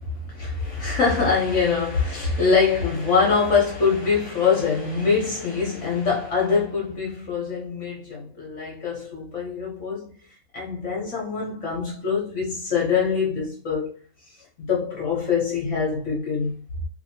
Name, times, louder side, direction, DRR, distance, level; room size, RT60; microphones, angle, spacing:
voice 1, 0.0-10.1 10.5-13.9 14.6-16.6, left 5 dB, 55° left, 0.8 m, -24 dB
2.8 x 2.6 x 2.7 m
omnidirectional pair, 2.2 m